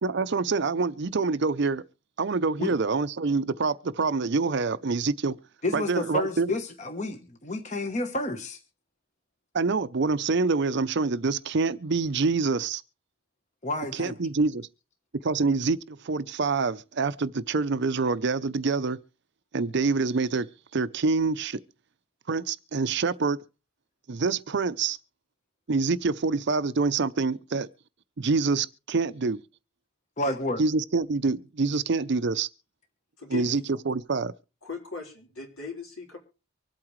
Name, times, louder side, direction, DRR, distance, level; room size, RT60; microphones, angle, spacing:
voice 1, 0.0-1.8 2.2-5.4 5.7-6.5 9.5-12.8 14.0-14.7 15.2-19.0 19.5-20.5 20.7-21.6 22.3-23.4 24.1-25.0 25.7-27.7 28.2-29.4 30.6-32.5 33.3-34.3, right 4 dB, 50° right, 0.5 m, -26 dB
voice 2, 5.6-8.6 13.6-14.1 30.2-30.6, left 1 dB, 35° left, 1.1 m, -30 dB
voice 3, 33.2-33.6 34.6-36.2, left 4 dB, 75° left, 3.9 m, -38 dB
24.5 x 8.6 x 3.2 m
head